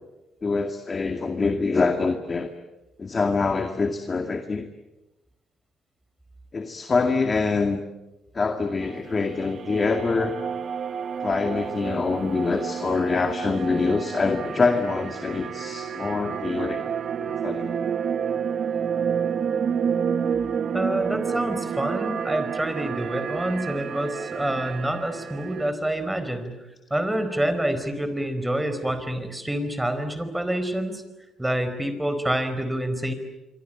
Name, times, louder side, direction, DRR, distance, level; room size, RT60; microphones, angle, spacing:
voice 1, 0.4-2.5 3.0-4.7 6.5-7.8 8.3-10.4 11.2-16.8 17.2-17.7, left 4 dB, 35° left, 6 dB, 2.1 m, -25 dB
sound 1, 8.8-25.7, right 7 dB, 55° right, 1.1 m, -30 dB
voice 2, 20.7-26.5 26.9-31.0 31.4-33.1, right 1 dB, 10° right, 10 dB, 4.6 m, -27 dB
26.5 x 25.0 x 8.9 m, 1.0 s
cardioid pair, 90°, 0 cm